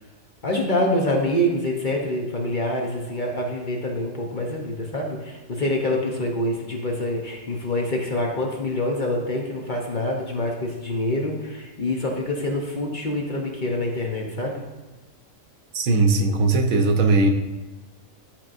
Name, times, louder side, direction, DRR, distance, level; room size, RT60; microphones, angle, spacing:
voice 1, 0.4-14.7, left 1 dB, 45° left, 0 dB, 0.8 m, -26 dB
voice 2, 15.7-17.3, right 3 dB, 80° right, 4 dB, 1.2 m, -19 dB
10.5 x 4.4 x 2.6 m, 1.2 s
omnidirectional pair, 1.4 m